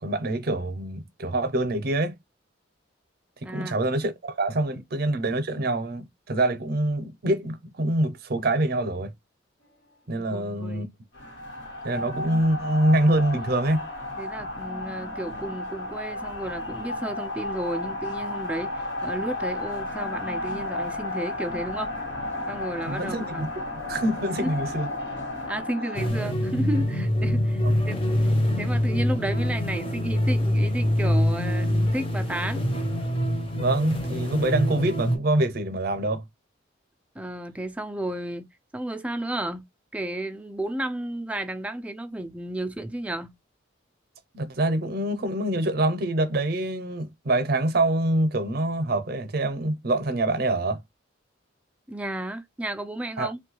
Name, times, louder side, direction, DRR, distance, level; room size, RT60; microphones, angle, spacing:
voice 1, 0.0-2.2 3.4-9.1 10.1-10.9 11.8-13.9 22.9-23.5 23.9-24.9 27.6-27.7 33.5-36.2 44.3-50.8 53.2-53.3, right 1 dB, 50° right, 0.6 m, -25 dB
voice 2, 3.4-3.8 10.3-10.9 14.2-21.9 22.5-23.5 24.4-24.5 25.5-28.0 28.6-32.7 37.2-39.7 39.9-43.3 51.9-53.4, right 1 dB, 5° right, 0.3 m, -32 dB
sound 1, 11.1-26.1, left 2 dB, 65° left, 1.1 m, -33 dB
sound 2, 25.9-35.2, equal, 30° left, 0.6 m, -25 dB
3.0 x 2.2 x 3.1 m
head